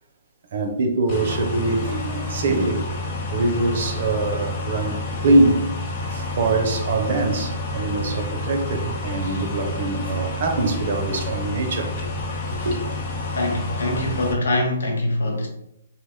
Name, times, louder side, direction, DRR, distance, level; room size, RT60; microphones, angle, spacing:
voice 1, 0.5-2.9 3.3-5.0 5.2-5.7 6.1-11.9 12.5-12.8, right 2 dB, 55° right, 0.6 m, -23 dB
sound 1, 1.1-14.3, left 2 dB, 40° left, 0.7 m, -29 dB
voice 2, 13.3-15.5, left 1 dB, 75° left, 0.6 m, -23 dB
2.8 x 2.1 x 3.5 m
hypercardioid pair, 140°, 0 cm